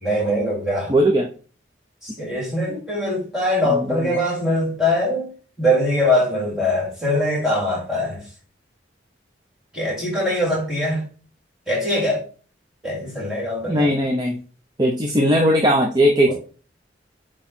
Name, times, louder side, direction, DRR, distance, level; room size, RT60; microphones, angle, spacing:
voice 1, 0.0-0.9 2.2-5.3 5.6-8.2 9.7-11.0 11.7-12.2 12.8-13.9 16.3-16.4, left 1 dB, 5° right, 3.2 m, -22 dB
voice 2, 0.9-1.3 3.6-4.1 13.7-14.4 14.8-16.3, equal, 20° right, 0.8 m, -18 dB
8.3 x 3.1 x 4.4 m
head